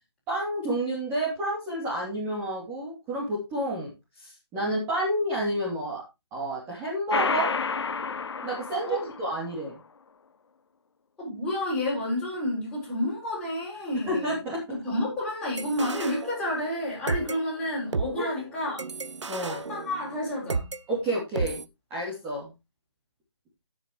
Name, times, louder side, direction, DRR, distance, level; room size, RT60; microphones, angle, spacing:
voice 1, 0.3-3.9 4.2-6.0 6.3-7.5 8.4-9.7 14.1-14.6 18.2-18.3 19.3-19.6 20.9-21.6 21.9-22.5, right 1 dB, 10° right, 3.0 m, -29 dB
sound 1, 7.1-9.5, left 5 dB, 65° left, 1.0 m, -30 dB
voice 2, 11.2-14.3 14.7-18.8 19.3-20.7, left 1 dB, 5° left, 6.6 m, -30 dB
sound 2, 15.6-16.8 17.1-20.8 21.4-21.6, right 4 dB, 80° right, 1.0 m, -33 dB
16.0 x 7.2 x 3.2 m
hypercardioid pair, 170°, 15 cm